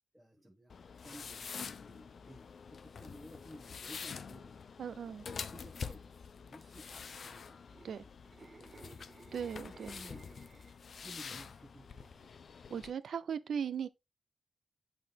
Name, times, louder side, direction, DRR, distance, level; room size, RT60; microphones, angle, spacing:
voice 1, 0.1-4.7 5.0-7.6 7.9-8.1 8.4-9.0 9.5-10.2 11.0-12.4, equal, 10° right, 1.3 m, -56 dB
sound 1, 0.7-12.9, left 6 dB, 50° left, 0.5 m, -47 dB
voice 2, 4.8-5.3 7.8-8.0 9.3-9.9 12.7-13.9, right 7 dB, 75° right, 0.6 m, -38 dB
sound 2, 7.6-10.9 11.3-11.6, right 3 dB, 30° right, 0.5 m, -56 dB
8.5 x 4.2 x 3.5 m
wide cardioid pair, 175°, 0 cm